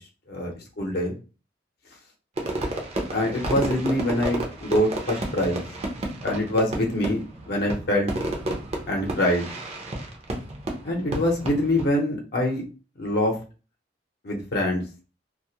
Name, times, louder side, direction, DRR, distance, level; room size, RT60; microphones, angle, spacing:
voice 1, 0.3-1.2 3.1-5.6 6.2-8.1 8.9-9.5 10.8-12.6 13.0-13.4 14.2-14.8, left 1 dB, 60° left, 0 dB, 0.7 m, -24 dB
Fireworks, 2.4-11.9, right 1 dB, 35° right, 0.5 m, -31 dB
2.3 x 2.1 x 2.7 m, 0.34 s
head